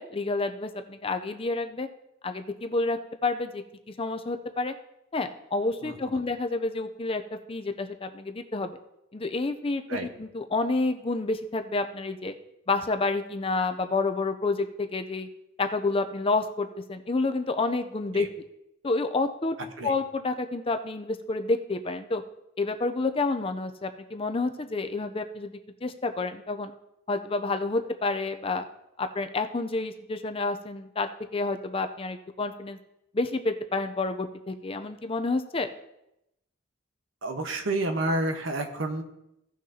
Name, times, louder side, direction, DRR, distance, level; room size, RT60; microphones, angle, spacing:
voice 1, 0.0-1.9 2.2-3.6 4.0-4.7 5.1-7.2 7.5-8.8 9.1-12.3 12.7-15.3 15.6-18.3 18.8-19.6 19.8-22.2 22.6-25.5 25.8-26.7 27.1-28.7 29.0-32.8 33.1-35.7, left 3 dB, 25° left, 8 dB, 0.5 m, -29 dB
voice 2, 5.8-6.1 9.9-10.1 18.1-18.3 19.8-19.9 37.2-39.0, right 2 dB, 70° right, 5 dB, 1.1 m, -29 dB
16.5 x 6.2 x 2.8 m, 0.85 s
head